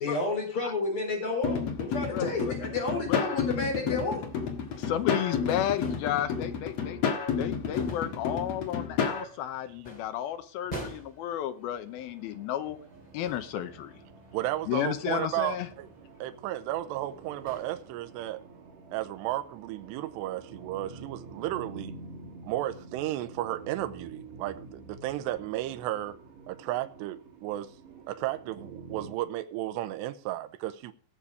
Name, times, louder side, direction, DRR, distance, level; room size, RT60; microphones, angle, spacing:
voice 1, 0.0-4.2, left 3 dB, 30° left, 4.7 m, -31 dB
sound 1, 1.4-9.2, left 6 dB, 55° left, 1.9 m, -31 dB
voice 2, 2.1-2.5 3.1-3.2 3.9-4.0 4.8-7.0 7.4-12.8 13.1-13.9 14.7-15.7, left 11 dB, 80° left, 2.2 m, -32 dB
sound 2, 2.8-18.4, right 1 dB, 10° left, 2.5 m, -50 dB
sound 3, 11.9-29.2, right 3 dB, 55° right, 3.3 m, -49 dB
voice 3, 14.3-15.9 16.2-18.4 18.9-21.9 22.4-26.2 26.5-27.7 28.1-30.9, right 14 dB, 80° right, 2.8 m, -33 dB
18.5 x 6.9 x 4.9 m
omnidirectional pair, 5.2 m